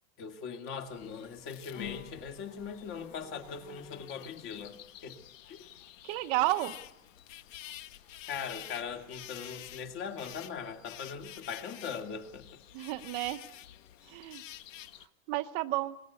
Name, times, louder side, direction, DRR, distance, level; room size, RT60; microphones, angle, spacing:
voice 1, 0.2-5.2 5.5-5.6 8.3-12.6, left 6 dB, 35° left, 2.4 m, -40 dB
sound 1, 0.9-15.1, left 12 dB, 90° left, 1.4 m, -49 dB
voice 2, 6.0-6.7 12.7-13.4 14.1-14.4 15.0-16.0, right 17 dB, 45° right, 1.0 m, -32 dB
24.0 x 21.5 x 8.3 m
supercardioid pair, 165°, 37 cm